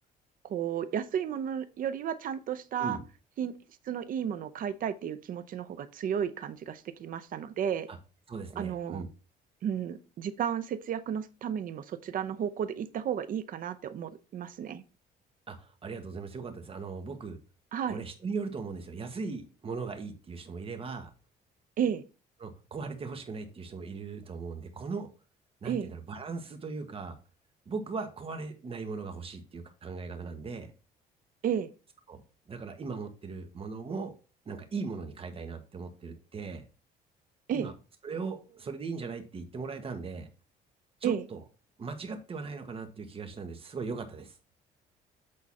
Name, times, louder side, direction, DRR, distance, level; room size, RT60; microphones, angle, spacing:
voice 1, 0.4-3.0 3.4-3.5 3.9-7.9 8.6-9.1 9.6-14.8 17.7-18.0 21.8-22.0 25.6-25.9 31.4-31.7 37.5-37.7 41.0-41.3, right 8 dB, 55° right, 13 dB, 0.7 m, -33 dB
voice 2, 8.3-9.1 15.5-17.4 17.9-21.1 22.4-25.1 25.6-27.2 27.6-30.7 32.1-32.2 32.5-34.1 34.4-36.6 37.5-37.7 38.0-40.3 41.0-41.4 41.8-44.4, right 4 dB, 35° right, 6 dB, 1.5 m, -38 dB
8.7 x 4.0 x 4.2 m, 0.33 s
cardioid pair, 110°, 17 cm